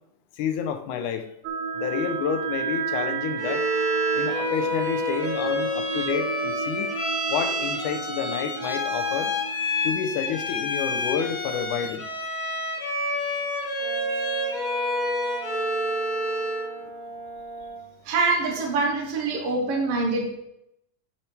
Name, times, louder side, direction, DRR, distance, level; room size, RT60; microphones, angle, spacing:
voice 1, 0.4-1.3 1.7-3.7 4.1-6.9 7.3-9.3 9.8-12.1, left 8 dB, 75° left, 8 dB, 2.3 m, -29 dB
sound 1, 1.4-11.0, right 6 dB, 80° right, 1.2 m, -32 dB
Bowed string instrument, 3.4-16.8, left 1 dB, 60° left, 3.1 m, -28 dB
Brass instrument, 13.8-17.9, right 1 dB, 35° right, 3.7 m, -39 dB
voice 2, 18.0-20.3, right 3 dB, 55° right, 0 dB, 2.2 m, -24 dB
9.1 x 8.4 x 3.5 m, 0.78 s
omnidirectional pair, 3.7 m